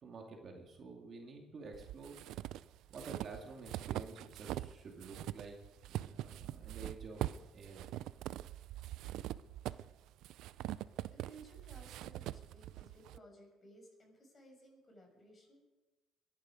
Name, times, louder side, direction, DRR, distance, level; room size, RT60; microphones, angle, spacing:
voice 1, 0.0-2.2 2.9-5.6 5.8-7.9, right 4 dB, 45° right, 1 dB, 2.4 m, -50 dB
sound 1, 1.7-4.7 5.0-13.2, right 14 dB, 80° right, 0.4 m, -43 dB
voice 2, 10.6-15.7, right 1 dB, 30° left, 1 dB, 6.3 m, -59 dB
22.5 x 10.5 x 5.1 m, 1.1 s
cardioid pair, 125°, 0 cm